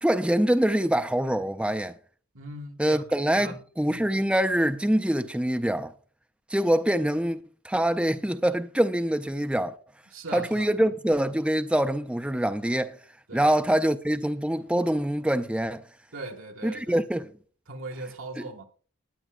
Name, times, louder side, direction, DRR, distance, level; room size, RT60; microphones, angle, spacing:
voice 1, 0.0-2.0 2.8-5.9 6.5-9.8 10.3-13.0 13.3-15.9 16.6-17.3, right 1 dB, 5° right, 0.4 m, -25 dB
voice 2, 2.3-3.0 3.4-3.6 3.9-4.1 10.1-10.7 13.3-13.5 16.1-17.0 17.7-18.6, right 2 dB, 60° right, 1.9 m, -39 dB
19.5 x 9.2 x 2.5 m
head